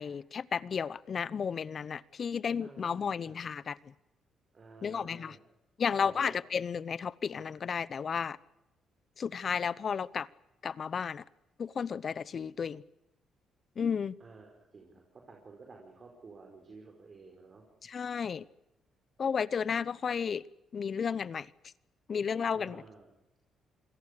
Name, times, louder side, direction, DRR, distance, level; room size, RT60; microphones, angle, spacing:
voice 1, 0.0-3.9 4.8-5.4 5.8-8.4 9.2-10.3 10.6-11.2 11.6-12.8 13.8-14.2 17.8-18.5 19.2-20.4 20.7-21.5 22.1-22.8, left 6 dB, 45° left, 0.8 m, -33 dB
voice 2, 2.6-3.4 4.5-5.4 6.0-6.4 14.2-17.6 22.5-23.1, right 4 dB, 40° right, 5.0 m, -53 dB
27.0 x 21.5 x 6.7 m
cardioid pair, 90°, 0 cm